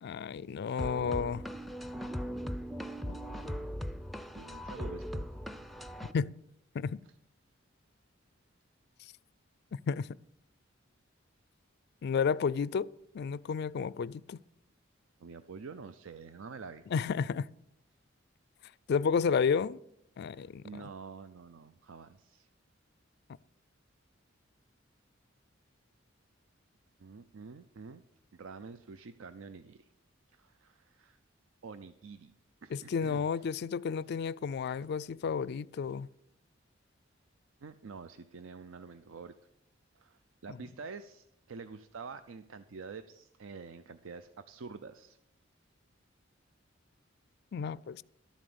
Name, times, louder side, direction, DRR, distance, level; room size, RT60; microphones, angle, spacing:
voice 1, 0.0-1.4 3.1-3.2 6.1-6.3 6.7-7.0 9.9-10.1 12.0-14.4 16.9-17.5 18.9-19.8 20.2-20.6 32.7-36.1 40.5-40.6 47.5-48.0, left 6 dB, 55° left, 0.3 m, -31 dB
sound 1, 0.8-6.1, equal, ahead, 0.5 m, -39 dB
voice 2, 4.3-5.8 7.0-7.1 15.2-16.9 20.3-22.5 27.0-28.0 28.3-29.9 30.3-31.2 31.6-32.3 32.6-33.3 37.6-39.4 40.0-45.2, right 5 dB, 80° right, 0.5 m, -47 dB
12.5 x 7.3 x 6.9 m
head